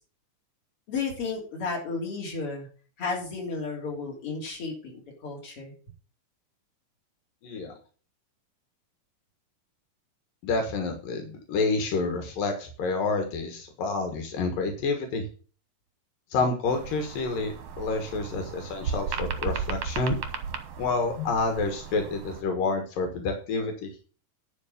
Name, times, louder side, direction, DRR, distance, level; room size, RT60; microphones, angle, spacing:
voice 1, 0.9-2.7 3.0-4.9 5.2-5.7, left 4 dB, 40° left, -1 dB, 4.0 m, -33 dB
voice 2, 7.4-7.7 10.4-15.2 16.3-20.2 20.8-23.9, left 3 dB, 80° left, 5 dB, 3.1 m, -28 dB
sound 1, 16.7-22.4, right 6 dB, 60° right, 1.7 m, -35 dB
11.0 x 4.8 x 6.7 m, 0.38 s
omnidirectional pair, 3.9 m